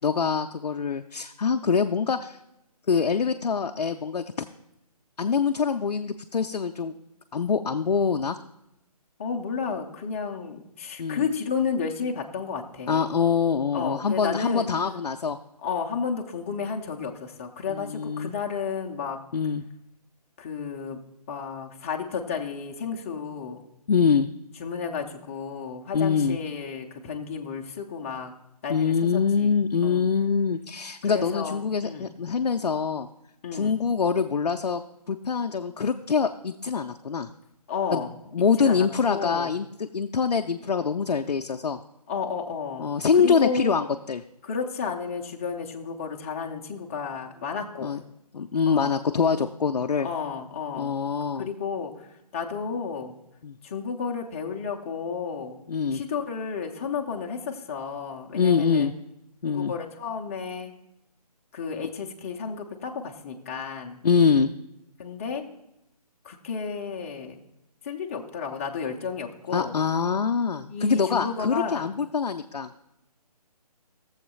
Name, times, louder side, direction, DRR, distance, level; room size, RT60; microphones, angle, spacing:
voice 1, 0.0-2.4 2.9-4.5 5.2-6.9 7.3-8.4 11.0-11.3 12.9-15.4 17.7-18.3 19.3-19.6 23.9-24.3 25.9-26.4 28.7-33.1 33.5-34.8 35.1-37.3 37.9-38.0 38.3-41.8 42.8-44.2 47.8-48.0 48.3-50.1 50.8-51.5 53.4-53.6 55.7-56.0 58.3-58.9 59.4-59.7 64.0-64.5 69.5-72.7, left 6 dB, 75° left, 4 dB, 0.5 m, -24 dB
voice 2, 9.2-13.1 13.7-14.7 15.6-19.2 20.4-21.0 21.3-23.6 24.6-28.3 28.6-30.1 31.0-32.1 33.4-33.8 37.7-38.1 38.6-39.5 42.1-42.9 43.2-43.7 44.4-48.0 48.7-48.9 50.0-50.9 51.4-52.1 52.3-53.1 53.6-55.6 55.9-58.9 59.4-60.7 61.5-64.0 65.0-65.5 66.2-67.4 67.8-69.7 70.7-71.9, left 6 dB, 20° left, 1 dB, 0.6 m, -32 dB
19.0 x 7.2 x 2.3 m, 0.86 s
figure-of-eight pair, 150°, 21 cm